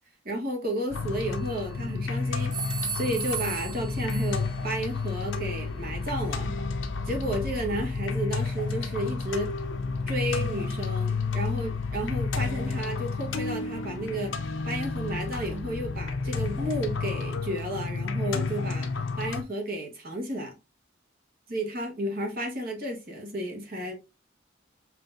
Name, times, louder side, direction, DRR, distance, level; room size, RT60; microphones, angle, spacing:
voice 1, 0.2-6.5 7.0-9.5 10.1-14.4 14.6-18.9 19.2-20.5 21.5-23.9, right 1 dB, 50° right, 1.3 m, -32 dB
sound 1, 0.9-19.4, left 4 dB, 75° left, 0.6 m, -31 dB
sound 2, 1.3-2.0 2.5-4.7, right 5 dB, 25° right, 0.6 m, -36 dB
5.9 x 2.9 x 2.6 m
head